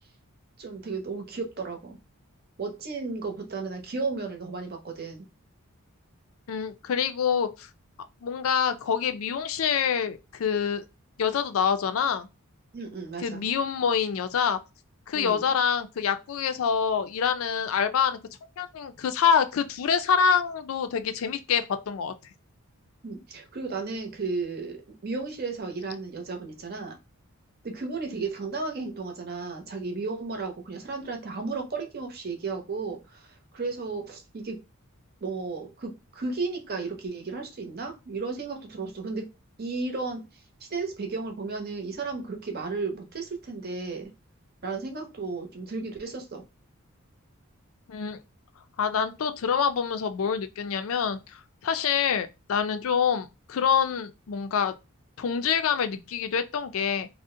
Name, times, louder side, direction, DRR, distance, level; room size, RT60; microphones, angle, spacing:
voice 1, 0.6-2.0 2.6-5.2 12.7-13.4 15.1-15.5 23.0-27.0 27.6-34.6 35.2-39.3 39.6-40.2 40.6-44.1 44.6-46.4, right 4 dB, 45° right, 0.7 m, -34 dB
voice 2, 6.5-7.7 8.2-10.9 11.2-12.3 13.2-14.6 15.1-18.2 18.6-22.1 47.9-48.2 48.8-54.7 55.2-57.1, left 7 dB, 70° left, 0.4 m, -26 dB
2.5 x 2.0 x 3.6 m
head